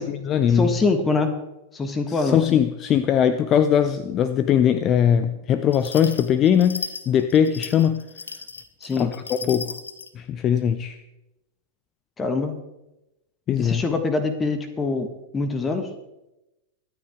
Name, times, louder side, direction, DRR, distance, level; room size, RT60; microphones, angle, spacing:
voice 1, 0.0-0.8 2.1-8.0 9.0-9.7 10.1-11.0 13.5-13.8, left 9 dB, 35° left, 12 dB, 0.6 m, -20 dB
voice 2, 0.5-1.4 1.7-2.4 8.8-9.1 12.2-12.6 13.6-15.1 15.3-15.9, left 3 dB, 20° left, 8 dB, 1.5 m, -24 dB
sound 1, 5.7-10.1, left 4 dB, 80° left, 0.9 m, -36 dB
23.5 x 9.2 x 3.7 m, 0.93 s
figure-of-eight pair, 90°, 0 cm